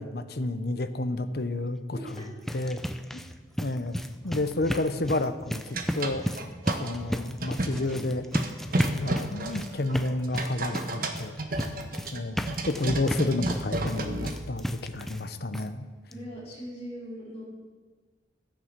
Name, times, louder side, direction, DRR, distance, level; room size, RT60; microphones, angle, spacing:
voice 1, 0.0-2.0 2.5-2.8 3.1-3.2 3.6-6.2 6.8-8.2 8.7-11.4 12.1-15.9, left 2 dB, 55° left, 10 dB, 0.9 m, -30 dB
voice 2, 1.9-2.3 16.1-17.5, equal, 35° left, -6 dB, 5.0 m, -40 dB
sound 1, 2.0-15.3 15.5-15.7 16.1-16.2 16.5-16.6, equal, ahead, 0.5 m, -34 dB
sound 2, 5.7-6.9 7.4-7.9 8.3-14.4, right 2 dB, 50° right, 1.3 m, -32 dB
14.0 x 10.5 x 7.5 m, 1.4 s
head